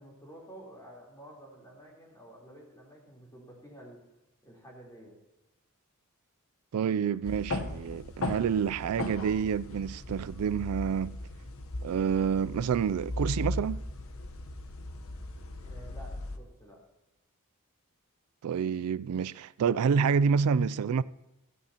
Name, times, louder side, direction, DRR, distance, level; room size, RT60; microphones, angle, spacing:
voice 1, 0.0-4.0 4.4-5.1 15.6-16.8, right 1 dB, 15° left, 3.5 m, -50 dB
voice 2, 6.7-11.2 11.8-13.8 18.4-21.0, right 6 dB, 80° right, 0.3 m, -28 dB
sound 1, 7.2-16.4, left 1 dB, 70° left, 1.0 m, -37 dB
15.5 x 15.0 x 2.9 m
head